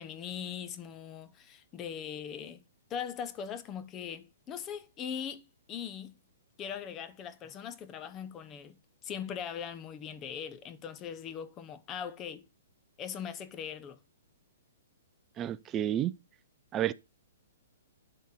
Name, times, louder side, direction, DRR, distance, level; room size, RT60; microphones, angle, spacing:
voice 1, 0.0-2.6 2.9-6.2 6.6-8.8 9.0-12.4 13.0-14.0, left 8 dB, 20° left, 0.8 m, -40 dB
voice 2, 15.4-16.1 16.7-16.9, right 11 dB, 20° right, 0.4 m, -30 dB
11.5 x 4.1 x 6.7 m
hypercardioid pair, 155°, 0 cm